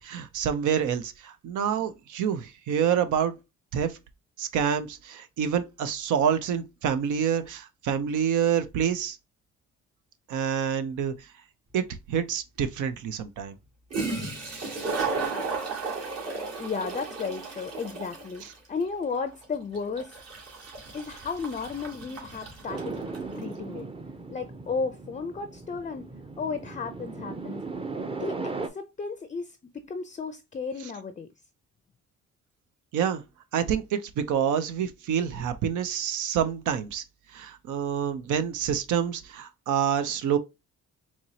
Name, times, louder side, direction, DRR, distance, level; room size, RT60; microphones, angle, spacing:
voice 1, 0.0-3.3 3.7-3.9 4.4-9.2 10.3-11.1 11.7-13.5 32.9-33.2 33.5-37.0 37.3-40.4, right 8 dB, 80° right, 0.7 m, -27 dB
Toilet flush, 11.9-12.0 13.6-13.7 13.9-23.3, right 4 dB, 55° right, 1.9 m, -34 dB
voice 2, 16.6-20.2 20.9-23.0 23.3-23.9 24.3-26.1 26.4-27.6 28.1-31.3, left 5 dB, 25° left, 0.5 m, -34 dB
sound 1, 22.7-28.7, right 3 dB, 20° right, 0.6 m, -37 dB
4.5 x 2.9 x 2.8 m
cardioid pair, 90°, 30 cm